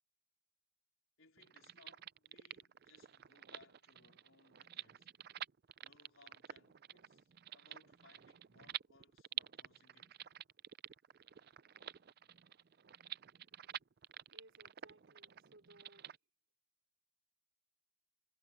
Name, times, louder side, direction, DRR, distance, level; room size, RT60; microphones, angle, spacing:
voice 1, 1.2-5.1 5.8-10.2, left 3 dB, 70° left, 4.3 m, -67 dB
sound 1, 1.4-16.2, right 11 dB, 50° right, 0.4 m, -50 dB
voice 2, 14.3-16.1, right 2 dB, 65° right, 3.9 m, -63 dB
head